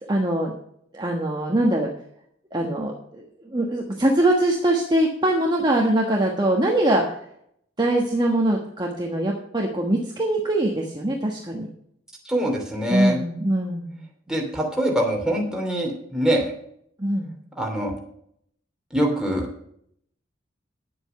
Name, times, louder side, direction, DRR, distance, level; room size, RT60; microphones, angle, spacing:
voice 1, 0.1-0.5 0.9-1.9 2.5-7.0 7.8-11.7 12.9-14.0 17.0-17.3, right 1 dB, 25° right, -1 dB, 1.3 m, -22 dB
voice 2, 12.2-13.2 14.3-16.5 17.6-18.0 18.9-19.5, equal, 5° right, 0 dB, 2.7 m, -24 dB
10.0 x 7.9 x 5.7 m, 0.69 s
head